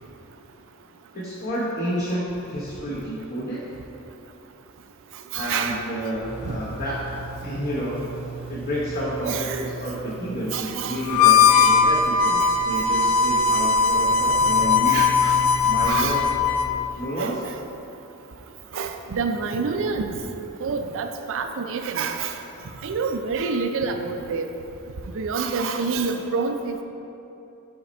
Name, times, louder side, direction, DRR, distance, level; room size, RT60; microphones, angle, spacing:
voice 1, 1.1-3.6 5.3-7.0 7.4-8.0 8.5-15.1 15.7-16.2 17.0-17.4, equal, 40° left, -7 dB, 0.9 m, -30 dB
voice 2, 5.3-5.8 6.4-6.6 9.2-9.6 10.5-11.0 14.9-15.4 15.9-16.2 17.2-17.5 18.7-20.1 20.6-22.3 22.8-24.5 25.1-26.8, right 5 dB, 60° right, 6 dB, 0.5 m, -27 dB
sound 1, 6.2-16.8, right 1 dB, 25° right, 0.8 m, -37 dB
Harmonica, 11.1-16.8, left 5 dB, 75° left, 0.4 m, -19 dB
5.8 x 5.2 x 4.2 m, 2.9 s
head